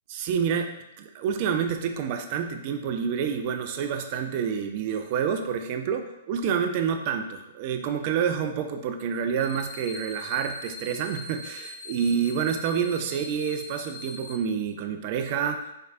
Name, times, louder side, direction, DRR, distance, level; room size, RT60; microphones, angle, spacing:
voice 1, 0.1-0.7 1.0-15.7, right 7 dB, 45° right, 6 dB, 0.3 m, -28 dB
sound 1, 9.4-14.4, left 2 dB, 50° left, 0.4 m, -42 dB
4.4 x 3.1 x 2.4 m, 0.86 s
hypercardioid pair, 120°, 0 cm